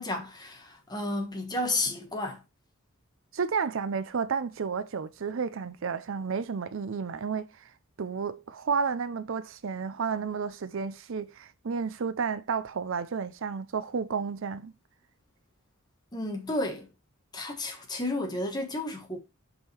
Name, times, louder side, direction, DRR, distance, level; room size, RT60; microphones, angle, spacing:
voice 1, 0.0-2.4 16.1-16.9 17.3-19.2, left 2 dB, 20° left, 1.4 m, -32 dB
voice 2, 3.3-7.5 8.0-14.7, right 5 dB, 65° right, 0.5 m, -31 dB
5.5 x 4.9 x 4.3 m
head